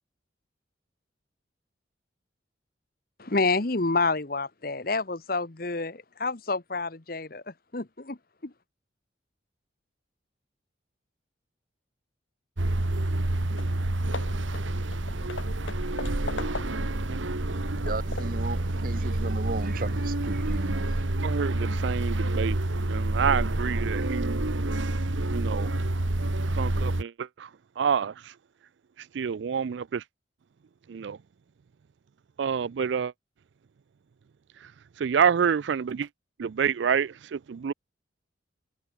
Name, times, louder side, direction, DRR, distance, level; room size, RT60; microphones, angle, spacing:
voice 1, 3.2-8.2 8.4-8.5, left 3 dB, 50° left, 1.2 m, -28 dB
sound 1, 12.6-27.0, right 1 dB, 90° right, 1.6 m, -28 dB
Hammer / Wood, 13.2-13.3 13.6-13.8 14.1-17.0 17.5-18.5, left 3 dB, 85° left, 1.9 m, -40 dB
voice 2, 17.8-20.9, right 3 dB, 50° right, 0.8 m, -35 dB
voice 3, 21.2-22.6 22.9-24.4 25.3-25.7 26.5-27.5 27.8-28.1 29.1-30.0 30.9-31.2 32.4-33.1 35.0-36.1 36.4-37.7, right 7 dB, 70° right, 0.4 m, -27 dB
head